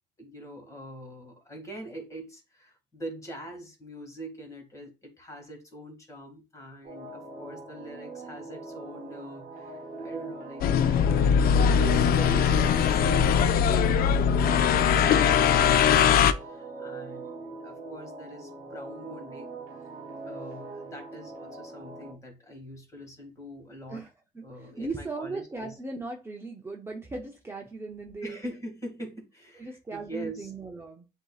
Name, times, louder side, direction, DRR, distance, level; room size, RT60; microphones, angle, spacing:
voice 1, 0.2-19.5 20.2-24.0 24.4-25.7 28.2-30.5, right 1 dB, 20° left, 2.0 m, -43 dB
sound 1, 6.8-22.1, right 2 dB, 55° right, 1.0 m, -42 dB
sound 2, 10.6-16.3, left 7 dB, 60° left, 0.4 m, -21 dB
voice 2, 24.3-28.4 29.6-31.0, right 3 dB, 15° right, 0.6 m, -38 dB
7.8 x 2.7 x 2.4 m
cardioid pair, 110°, 17 cm